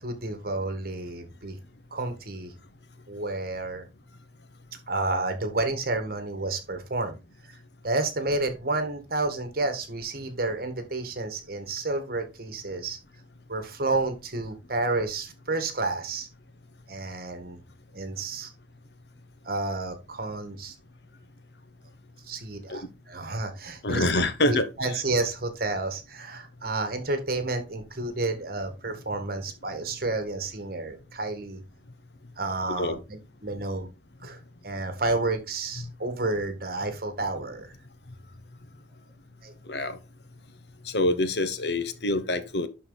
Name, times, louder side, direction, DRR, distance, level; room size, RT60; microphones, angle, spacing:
voice 1, 0.0-1.6 1.9-2.5 3.1-3.8 4.9-7.2 7.4-7.6 7.8-13.0 13.5-16.3 16.9-17.6 17.9-18.5 19.4-20.7 22.2-24.0 24.5-31.6 32.4-33.9 34.2-37.7 39.4-39.5, right 2 dB, 55° right, 1.7 m, -30 dB
voice 2, 23.8-24.7 32.8-32.9 35.8-35.9 39.7-40.0 40.9-42.7, left 2 dB, 65° left, 1.0 m, -25 dB
11.5 x 4.2 x 4.0 m
head